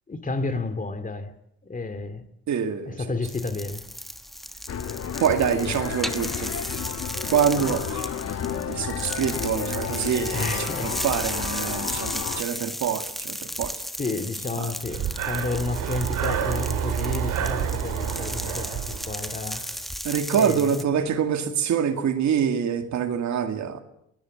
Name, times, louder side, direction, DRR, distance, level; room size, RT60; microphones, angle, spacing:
voice 1, 0.1-1.3 1.6-2.2 2.8-3.8 10.3-11.1 11.6-12.2 14.0-19.6 20.3-20.8, left 3 dB, 25° left, 2.3 m, -31 dB
voice 2, 2.5-3.0 5.2-6.5 7.3-8.1 8.5-13.8 14.6-14.7 20.0-23.8, right 8 dB, 70° right, 2.2 m, -25 dB
sound 1, 3.2-20.8, equal, ahead, 1.3 m, -35 dB
sound 2, 4.7-12.4, left 8 dB, 55° left, 1.2 m, -32 dB
Breathing, 14.8-19.7, right 9 dB, 90° right, 3.1 m, -29 dB
21.5 x 16.5 x 7.5 m
cardioid pair, 90°, 30 cm